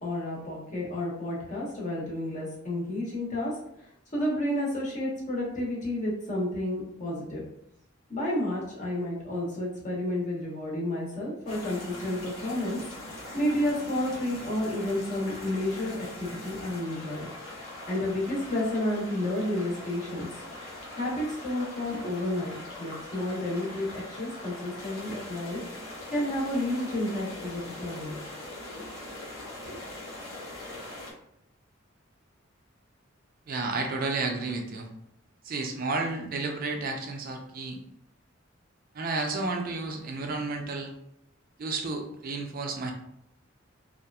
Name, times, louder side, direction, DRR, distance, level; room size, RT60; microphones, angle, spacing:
voice 1, 0.0-3.6 4.1-7.5 8.1-17.3 17.9-20.3 20.9-25.6 26.1-28.2 28.7-28.8 29.6-29.8, left 1 dB, 40° left, -5 dB, 0.9 m, -31 dB
sound 1, 11.5-31.1, left 1 dB, 85° left, 0.8 m, -42 dB
voice 2, 33.5-34.9 35.4-37.8 38.9-40.9 41.6-42.9, right 3 dB, 45° right, 3 dB, 0.4 m, -31 dB
2.8 x 2.4 x 2.2 m, 0.76 s
head